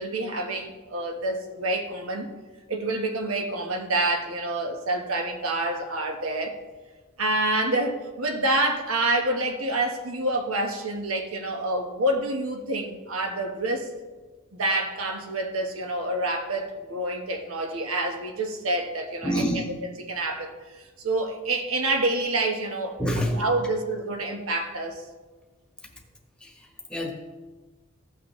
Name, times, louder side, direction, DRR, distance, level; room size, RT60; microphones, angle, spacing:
voice 1, 0.0-2.3 2.7-6.6 7.2-13.9 14.6-19.6 20.1-20.5 21.0-25.0, right 2 dB, 80° right, 3 dB, 1.3 m, -27 dB
voice 2, 19.2-19.7 23.0-23.4 26.4-27.1, equal, 5° left, 1 dB, 1.2 m, -27 dB
16.0 x 6.0 x 3.1 m, 1.3 s
head